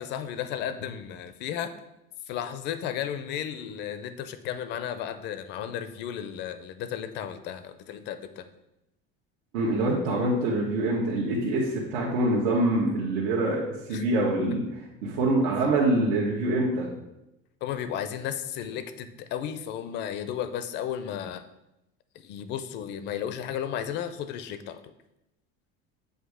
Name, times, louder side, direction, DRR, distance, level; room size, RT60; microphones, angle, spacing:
voice 1, 0.0-1.7 2.3-8.5 13.9-14.0 17.6-21.4 22.1-24.8, left 9 dB, 40° left, 11 dB, 0.4 m, -34 dB
voice 2, 9.5-13.6 13.9-16.9, right 2 dB, 90° right, -5 dB, 1.3 m, -25 dB
7.9 x 2.7 x 4.8 m, 0.89 s
cardioid pair, 170°, 29 cm